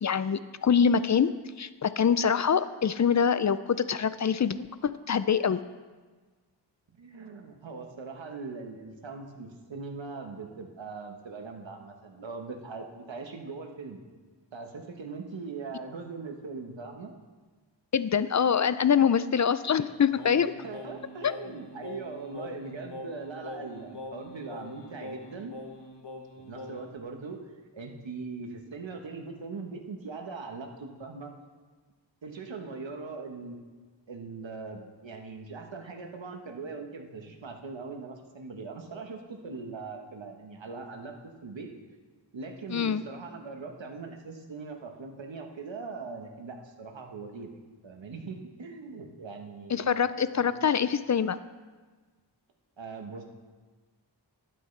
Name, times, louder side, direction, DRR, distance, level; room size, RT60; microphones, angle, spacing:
voice 1, 0.0-1.3 1.6-5.6 17.9-20.5 21.2-21.3 42.7-43.0 49.7-51.4, left 7 dB, 40° left, 14 dB, 0.4 m, -25 dB
voice 2, 6.9-14.0 14.5-17.1 20.6-25.5 26.4-27.4 27.7-31.3 32.2-33.6 34.1-41.7 42.3-47.5 47.8-50.5 52.8-53.2, right 4 dB, 85° right, 3 dB, 1.3 m, -41 dB
Singing, 20.2-27.0, left 2 dB, 65° left, 1.2 m, -43 dB
12.0 x 11.0 x 3.3 m, 1.4 s
wide cardioid pair, 70°, 44 cm